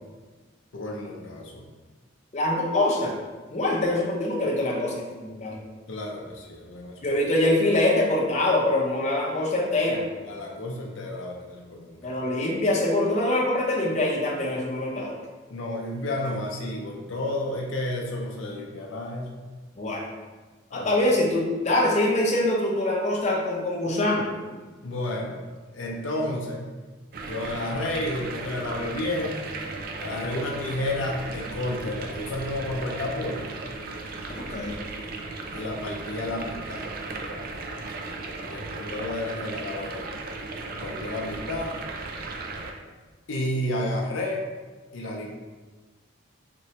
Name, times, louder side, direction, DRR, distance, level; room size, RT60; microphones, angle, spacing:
voice 1, 0.7-1.7 5.9-7.2 10.2-12.2 15.5-19.4 20.7-20.9 24.8-25.5 25.7-26.7 27.3-29.4 30.0-33.5 35.5-36.9 38.5-40.1 40.7-41.7 43.3-44.4 44.9-45.4, left 1 dB, 75° left, -1 dB, 0.6 m, -31 dB
voice 2, 2.3-3.1 3.5-5.6 7.0-10.0 12.0-15.2 19.8-20.1 20.7-24.2 34.4-34.7, left 1 dB, 35° left, -3 dB, 0.7 m, -24 dB
sound 1, 27.1-42.7, right 3 dB, 50° right, 0.4 m, -36 dB
4.4 x 3.1 x 2.8 m, 1.3 s
head